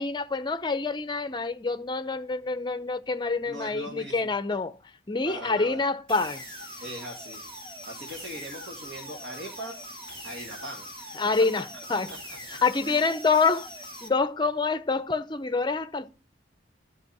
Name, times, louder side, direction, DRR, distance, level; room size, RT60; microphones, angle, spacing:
voice 1, 0.0-4.7 5.1-6.4 11.2-12.1 12.5-13.7 14.0-16.1, left 4 dB, 25° left, 0.6 m, -27 dB
voice 2, 3.5-4.2 5.2-5.8 6.8-7.4 7.9-9.8 10.2-11.2 12.1-12.2 12.9-13.0, right 1 dB, 75° right, 2.1 m, -40 dB
sound 1, 6.1-14.1, equal, 30° right, 2.7 m, -42 dB
13.0 x 5.4 x 5.7 m
head